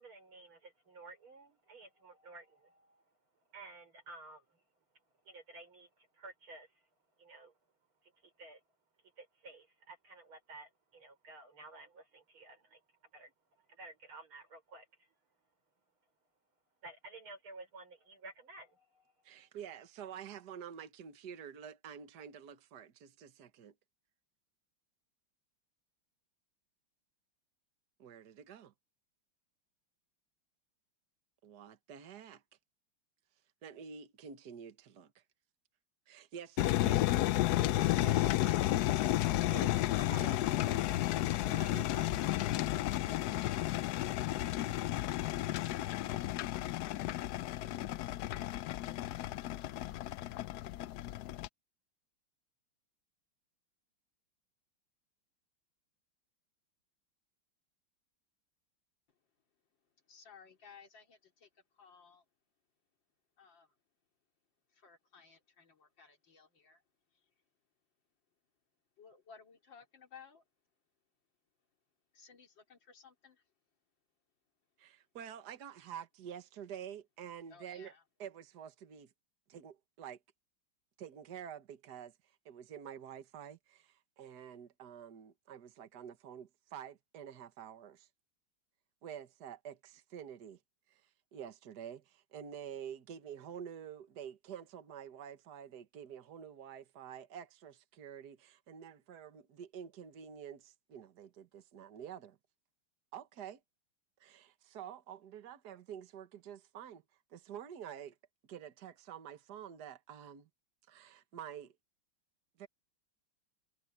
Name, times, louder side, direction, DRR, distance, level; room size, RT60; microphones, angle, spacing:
voice 1, 0.0-3.0 3.5-4.6 5.2-6.8 7.2-7.5 8.0-8.6 9.2-12.8 13.1-13.3 13.6-15.1 16.8-19.0 19.3-19.5, right 2 dB, 90° right, 6.1 m, -53 dB
voice 2, 19.2-23.7 28.0-28.7 31.4-32.4 33.6-35.2 36.1-37.1 37.6-39.0 39.5-42.3 74.8-77.9 78.2-79.1 79.5-80.2 81.0-82.1 82.5-88.1 89.0-90.6 90.9-91.0 91.3-102.4 103.1-103.6 104.2-107.0 107.3-108.2 108.5-110.5 110.9-111.7 112.6-112.7, right 8 dB, 55° right, 1.8 m, -48 dB
sound 1, 36.6-51.5, left 15 dB, 85° left, 0.8 m, -32 dB
voice 3, 59.8-62.3 63.4-63.8 64.7-66.8 67.1-67.3 69.0-70.4 72.1-73.5 77.5-78.0, left 6 dB, 65° left, 3.6 m, -59 dB
omnidirectional pair, 2.2 m